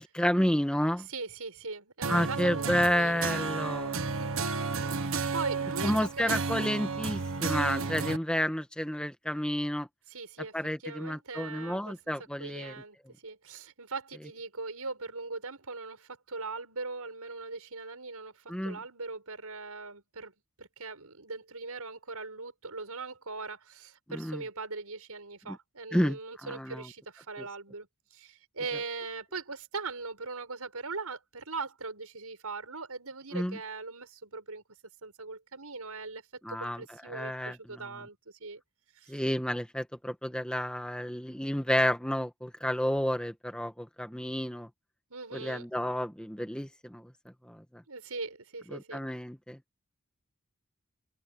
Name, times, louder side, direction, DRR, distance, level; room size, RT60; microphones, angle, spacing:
voice 1, 0.0-1.1 2.1-4.0 5.8-9.9 10.5-12.7 18.5-18.8 24.1-24.4 25.5-25.6 25.9-26.9 27.4-27.5 33.3-33.6 36.4-38.0 39.1-44.7 45.3-47.1 47.4-47.8 48.7-49.6, equal, 5° left, 1.7 m, -31 dB
voice 2, 1.1-3.3 4.0-4.4 4.8-6.5 10.1-10.6 10.8-11.9 12.4-13.0 13.2-20.3 20.6-34.6 35.0-36.2 36.5-38.6 39.0-39.1 45.1-45.7 47.9-49.1, right 4 dB, 90° right, 6.1 m, -40 dB
sound 1, 2.0-8.2, right 4 dB, 65° right, 1.3 m, -32 dB
head